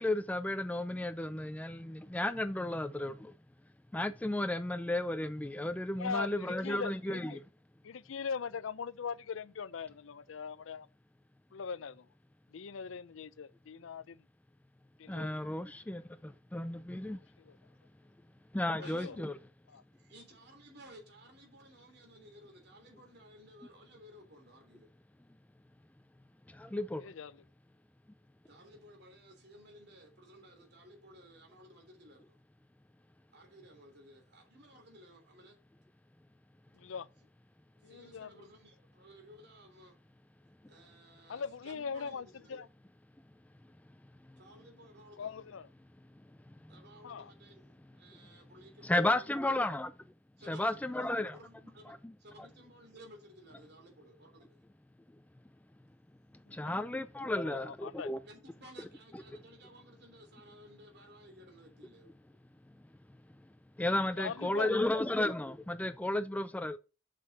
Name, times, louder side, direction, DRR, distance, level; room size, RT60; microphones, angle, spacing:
voice 1, 0.0-3.3 3.9-7.3 15.1-17.2 18.5-19.3 26.5-27.0 46.5-46.6 48.8-49.9 50.5-51.4 52.0-52.1 56.5-58.2 63.8-66.8, left 1 dB, 10° left, 0.4 m, -33 dB
voice 2, 6.0-7.4 7.8-10.9 11.5-12.1 12.5-14.2 15.0-15.3 18.7-19.2 19.7-19.8 27.0-27.3 36.7-37.1 37.8-38.3 41.3-42.7 45.2-45.7 47.0-47.3 56.5-56.9 57.3-58.1 64.2-64.9, left 6 dB, 90° left, 0.5 m, -41 dB
voice 3, 18.8-19.3 19.7-24.9 28.5-32.4 33.3-35.6 37.8-39.9 40.7-42.7 44.4-45.3 46.7-49.6 50.4-51.9 52.2-54.6 58.0-62.1, right 1 dB, 60° right, 3.2 m, -56 dB
7.7 x 6.6 x 4.1 m
head